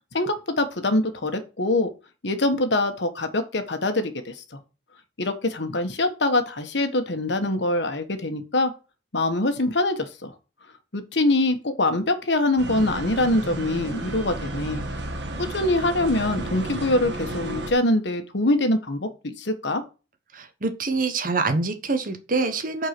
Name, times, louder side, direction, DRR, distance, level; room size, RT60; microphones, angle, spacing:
voice 1, 0.1-1.9 2.2-4.4 5.2-8.7 9.1-10.3 10.9-14.8 15.4-19.8, left 2 dB, 70° left, 8 dB, 1.4 m, -24 dB
sound 1, 12.6-17.7, right 1 dB, 70° right, 1.5 m, -32 dB
voice 2, 20.3-22.9, right 3 dB, 50° right, 8 dB, 1.3 m, -25 dB
8.4 x 4.5 x 6.0 m, 0.32 s
head